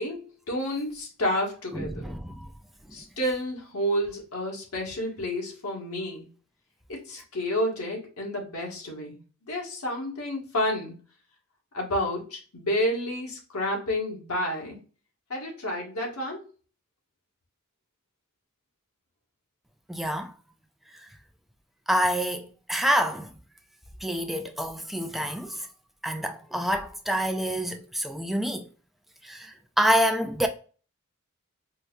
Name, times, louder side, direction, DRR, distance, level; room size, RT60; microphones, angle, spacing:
voice 1, 0.0-2.1 2.9-6.3 6.9-9.2 9.5-10.9 11.7-14.8 15.3-16.4, equal, 90° left, 1.4 m, -30 dB
voice 2, 1.7-2.5 2.9-3.0 19.9-20.3 21.0-21.1 21.9-23.3 24.0-25.7 26.0-28.7 29.2-30.5, equal, ahead, 0.4 m, -27 dB
4.5 x 2.7 x 2.2 m
head